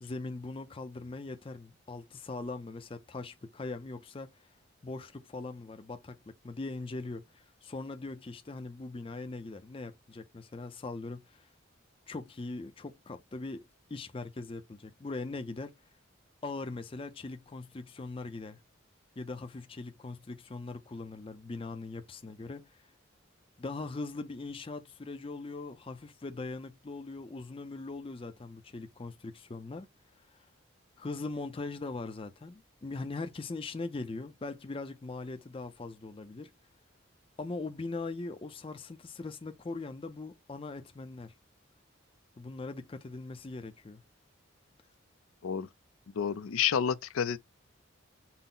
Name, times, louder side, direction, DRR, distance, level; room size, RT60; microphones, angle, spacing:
voice 1, 0.0-4.5 4.8-11.5 12.1-15.7 16.4-18.6 19.2-22.9 23.6-29.9 30.3-30.5 31.0-36.5 37.4-41.3 42.4-44.0, left 3 dB, 25° left, 0.4 m, -41 dB
voice 2, 46.2-47.4, left 8 dB, 85° left, 0.4 m, -29 dB
5.7 x 2.0 x 3.8 m
head